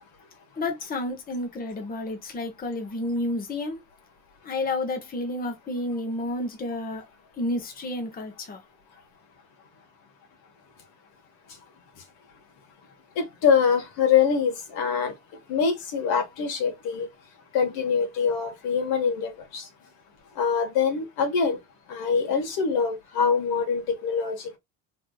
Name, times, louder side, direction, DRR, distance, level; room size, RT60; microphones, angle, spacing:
voice 1, 0.6-3.8 4.4-7.0 7.4-8.6, left 2 dB, 20° left, 0.9 m, -30 dB
voice 2, 13.2-15.1 15.5-17.1 17.5-19.6 20.4-21.6 21.9-24.6, left 6 dB, 70° left, 1.5 m, -24 dB
3.4 x 3.0 x 2.3 m
cardioid pair, 100°, 39 cm